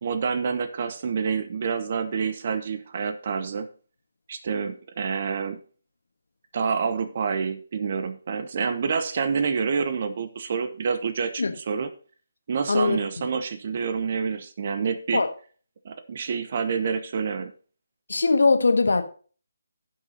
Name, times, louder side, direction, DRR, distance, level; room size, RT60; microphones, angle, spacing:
voice 1, 0.0-3.7 4.3-5.6 6.5-11.9 12.5-15.2 15.8-17.5, right 5 dB, 45° right, 0.8 m, -27 dB
voice 2, 12.7-13.0 15.1-15.3 18.1-19.0, left 3 dB, 70° left, 1.4 m, -20 dB
16.0 x 5.8 x 2.8 m
figure-of-eight pair, 150°, 0 cm